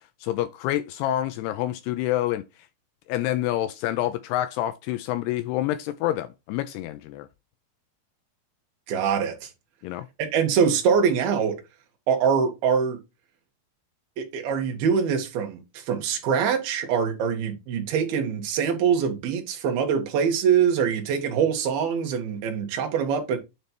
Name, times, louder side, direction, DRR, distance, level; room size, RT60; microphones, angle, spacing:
voice 1, 0.2-2.4 3.1-7.3 9.8-10.1, left 13 dB, 85° left, 2.4 m, -27 dB
voice 2, 8.9-9.5 10.2-11.5 12.1-13.0 14.2-23.4, right 7 dB, 65° right, 3.3 m, -24 dB
9.5 x 3.3 x 4.4 m
omnidirectional pair, 5.0 m